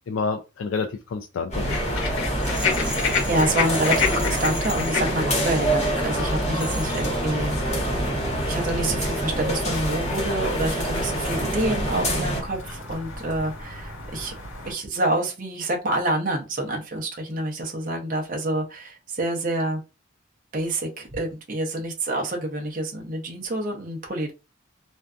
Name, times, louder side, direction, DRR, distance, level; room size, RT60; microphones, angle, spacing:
voice 1, 0.1-2.1, left 4 dB, 70° left, 5 dB, 0.3 m, -29 dB
sound 1, 1.5-12.4, right 1 dB, 35° left, 1.0 m, -26 dB
sound 2, 1.6-14.7, left 4 dB, 90° left, 1.1 m, -31 dB
Rattle, 2.4-6.1 6.5-7.2, equal, 5° right, 1.1 m, -38 dB
voice 2, 2.7-7.6 8.4-14.3 14.6-19.8 20.5-24.3, right 1 dB, 40° right, 1 dB, 0.6 m, -27 dB
2.5 x 2.3 x 2.3 m, 0.28 s
head